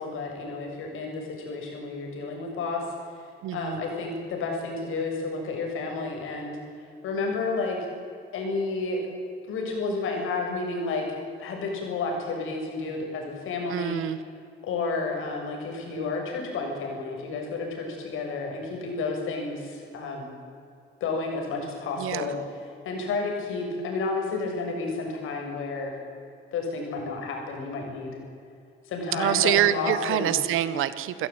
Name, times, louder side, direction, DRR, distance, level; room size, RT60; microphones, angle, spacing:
voice 1, 0.0-2.8 3.5-6.6 7.0-7.8 8.3-9.0 9.5-11.0 11.4-14.0 14.6-20.3 21.0-22.4 22.8-25.9 26.5-28.2 28.8-30.3, left 3 dB, 80° left, 1 dB, 7.6 m, -31 dB
voice 2, 3.4-3.8 13.7-14.2 22.0-22.4 29.1-31.3, right 12 dB, 85° right, 14 dB, 1.5 m, -26 dB
27.5 x 15.5 x 9.2 m, 2.5 s
cardioid pair, 100°, 21 cm